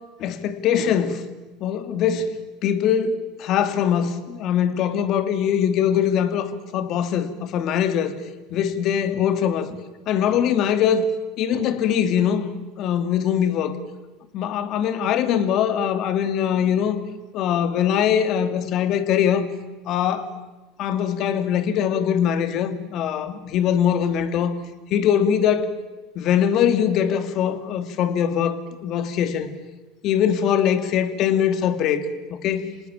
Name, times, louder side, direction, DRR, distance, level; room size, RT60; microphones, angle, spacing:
voice 1, 0.2-1.2 1.6-2.3 2.6-8.1 8.5-9.8 10.1-11.1 11.4-12.5 12.8-13.8 14.3-17.0 17.3-19.5 19.9-20.3 20.8-24.5 24.9-25.7 26.2-29.5 30.0-32.0 32.3-32.7, left 9 dB, 55° left, 10 dB, 2.5 m, -22 dB
26.5 x 19.0 x 8.9 m, 1.1 s
hypercardioid pair, 95°, 0 cm